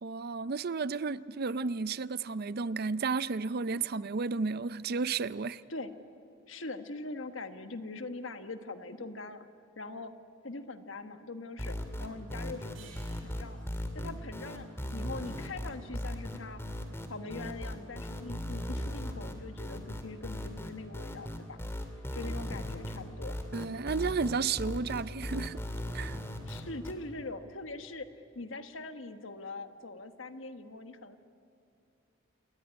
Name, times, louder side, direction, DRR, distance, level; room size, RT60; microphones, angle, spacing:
voice 1, 0.0-5.6 23.5-25.6 25.9-26.2, right 4 dB, 50° right, 0.5 m, -32 dB
voice 2, 6.5-9.4 9.8-10.1 10.4-13.7 13.9-16.6 17.1-21.6 22.1-23.4 26.5-31.2, left 2 dB, 70° left, 1.4 m, -42 dB
sound 1, 11.6-26.9, left 1 dB, 15° left, 2.4 m, -37 dB
sound 2, 12.7-15.9, right 5 dB, 70° right, 7.5 m, -59 dB
28.0 x 20.0 x 9.8 m
head